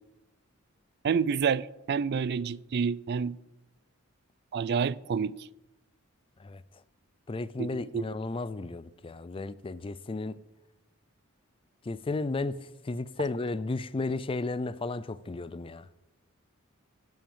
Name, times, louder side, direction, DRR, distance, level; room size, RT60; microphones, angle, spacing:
voice 1, 1.0-3.4 4.5-5.5 7.6-8.0, right 6 dB, 50° right, 0.4 m, -29 dB
voice 2, 7.3-10.4 11.9-12.5 12.9-15.9, left 3 dB, 25° left, 0.4 m, -33 dB
11.5 x 5.8 x 7.1 m
head